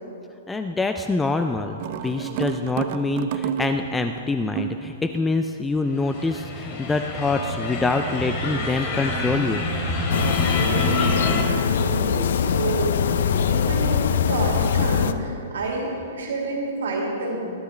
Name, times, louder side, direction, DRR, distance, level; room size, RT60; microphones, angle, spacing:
voice 1, 0.5-9.6, left 3 dB, 5° left, 6 dB, 0.3 m, -25 dB
sound 1, 1.8-4.1 4.6-4.9, right 9 dB, 40° right, 0.5 m, -30 dB
sound 2, 5.9-11.4, left 2 dB, 35° left, 2.9 m, -27 dB
sound 3, 10.1-15.1, left 7 dB, 70° left, 0.5 m, -22 dB
voice 2, 10.5-17.5, right 2 dB, 85° right, -2 dB, 2.6 m, -29 dB
19.5 x 11.5 x 3.2 m, 2.8 s
hypercardioid pair, 155°, 0 cm